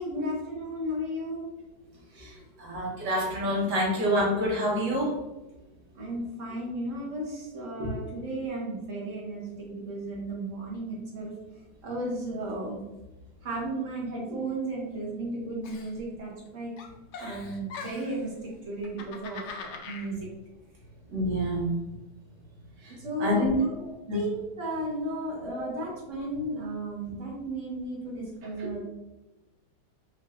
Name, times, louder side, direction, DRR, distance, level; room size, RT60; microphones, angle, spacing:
voice 1, 0.0-1.4 5.9-11.3 11.8-12.8 13.4-16.7 17.2-20.2 22.9-23.8 24.1-28.8, right 1 dB, 45° right, -4 dB, 1.6 m, -34 dB
voice 2, 2.2-5.2 7.8-7.9 21.1-21.7 22.8-23.5 24.1-24.2 25.5-25.7 28.6-28.7, equal, 70° right, -4 dB, 1.8 m, -28 dB
Giggle, 15.6-16.5 16.8-18.2 18.8-20.1, left 4 dB, 75° left, 0.6 m, -41 dB
5.4 x 3.1 x 2.5 m, 1.0 s
omnidirectional pair, 1.9 m